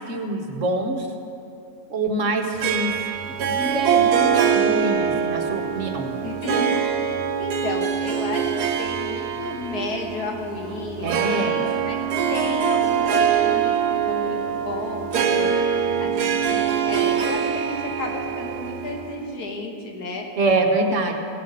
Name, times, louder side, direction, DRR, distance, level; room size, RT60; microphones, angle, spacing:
voice 1, 0.1-1.1 1.9-2.9 3.2-6.1 11.0-11.6 20.4-21.1, right 2 dB, 55° right, 3 dB, 1.2 m, -25 dB
Harp, 2.6-19.4, right 7 dB, 80° right, 1.3 m, -23 dB
voice 2, 6.2-13.7 14.1-15.6 16.0-20.3, left 2 dB, 85° left, 2 dB, 1.9 m, -33 dB
16.0 x 7.7 x 5.5 m, 2.7 s
omnidirectional pair, 1.6 m